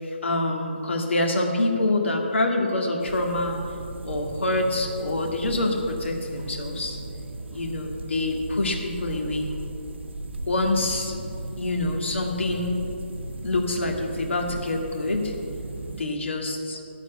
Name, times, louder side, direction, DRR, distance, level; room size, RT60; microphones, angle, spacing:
voice 1, 0.0-3.6 4.0-7.0 7.5-9.4 10.5-11.2 11.6-12.8 13.4-15.3 15.8-16.8, left 2 dB, 80° left, 1 dB, 1.9 m, -26 dB
sound 1, 3.0-16.0, right 2 dB, 70° right, 0.7 m, -36 dB
11.5 x 4.4 x 8.2 m, 2.7 s
hypercardioid pair, 175°, 6 cm